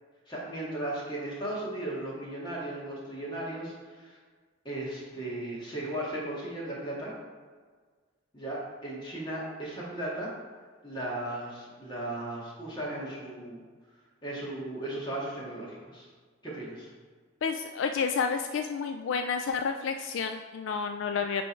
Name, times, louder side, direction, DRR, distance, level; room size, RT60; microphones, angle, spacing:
voice 1, 0.3-4.2 4.7-7.1 8.3-10.3 10.8-13.6 14.2-16.1 16.4-16.9, right 1 dB, 25° left, -5 dB, 1.8 m, -36 dB
voice 2, 17.4-21.4, left 5 dB, 70° left, 6 dB, 0.3 m, -30 dB
9.1 x 3.4 x 4.4 m, 1.5 s
head